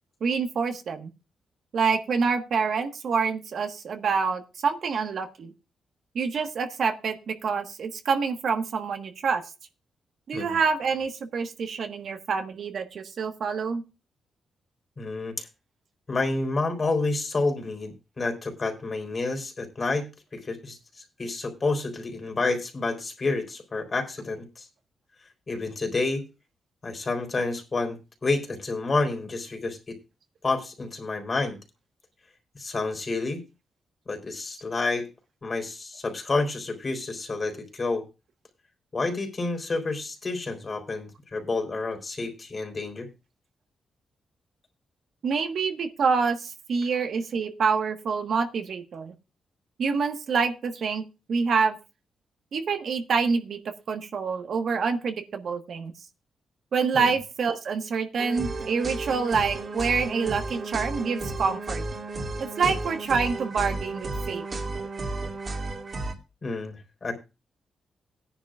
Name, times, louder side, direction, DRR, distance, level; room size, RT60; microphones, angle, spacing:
voice 1, 0.2-1.1 1.7-5.5 6.1-9.4 10.3-13.8 45.2-49.1 49.8-51.0 51.3-51.8 52.5-53.6 53.9-55.9 56.7-61.8 62.4-64.4, right 5 dB, 65° right, 5 dB, 1.4 m, -27 dB
voice 2, 15.0-15.5 16.1-24.7 25.5-26.2 26.8-30.0 30.4-31.6 32.5-33.4 34.1-35.1 35.4-38.1 38.9-43.1 56.9-57.1 62.6-62.8 66.4-67.2, left 3 dB, 40° left, 4 dB, 3.7 m, -29 dB
sound 1, 58.2-66.1, right 2 dB, 45° right, 2.5 m, -33 dB
17.5 x 10.5 x 2.4 m, 0.29 s
cardioid pair, 90°, 0 cm